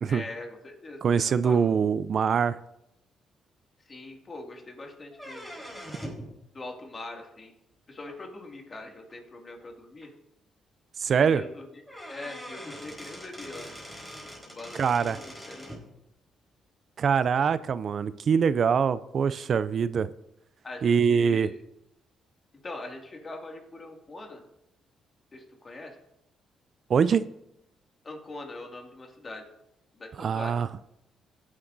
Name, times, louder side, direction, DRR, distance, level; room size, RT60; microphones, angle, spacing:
voice 1, 0.1-1.6 3.9-5.6 6.5-7.5 7.9-10.1 11.1-11.7 12.1-13.9 14.4-15.6 20.6-21.6 22.6-24.4 25.3-25.9 28.0-29.4 30.0-30.6, left 2 dB, 35° left, 2 dB, 2.2 m, -42 dB
voice 2, 1.0-2.6 11.0-11.4 14.7-15.2 17.0-20.1 20.8-21.5 26.9-27.2 30.2-30.7, right 6 dB, 55° right, 15 dB, 0.4 m, -24 dB
sound 1, 5.1-6.3 8.1-8.2 9.1-9.2 9.6-9.7 10.0-10.1 11.5-11.6 11.9-15.8, equal, 5° left, 4.1 m, -42 dB
16.5 x 9.6 x 2.7 m, 0.84 s
cardioid pair, 90°, 0 cm